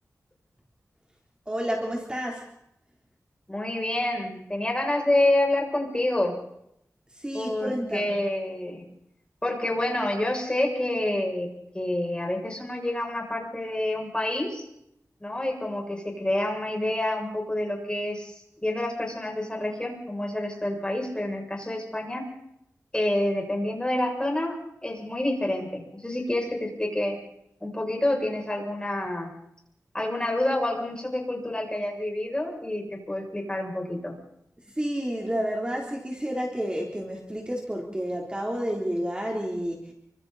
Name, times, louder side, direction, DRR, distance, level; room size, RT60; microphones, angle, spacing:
voice 1, 1.5-2.5 7.1-8.2 34.7-39.9, equal, 15° right, -1 dB, 3.7 m, -30 dB
voice 2, 3.5-6.3 7.3-8.8 9.4-11.5 11.7-14.7 15.2-18.3 18.6-22.3 22.9-27.2 27.6-29.3 29.9-34.1, left 1 dB, 15° left, 0 dB, 7.3 m, -28 dB
29.5 x 25.5 x 4.3 m, 0.77 s
wide cardioid pair, 100°, 6 cm